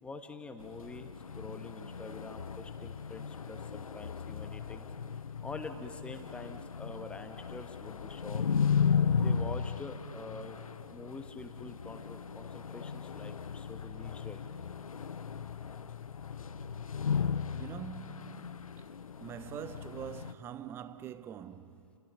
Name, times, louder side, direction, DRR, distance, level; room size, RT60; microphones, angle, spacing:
voice 1, 0.0-4.9 5.4-8.5 9.2-10.6 10.9-14.4, left 3 dB, 5° left, 1.3 m, -46 dB
sound 1, 0.6-20.3, left 6 dB, 75° left, 0.8 m, -35 dB
voice 2, 17.5-18.9 19.2-22.0, right 9 dB, 15° right, 0.6 m, -44 dB
29.5 x 28.5 x 6.9 m
figure-of-eight pair, 135°, 18 cm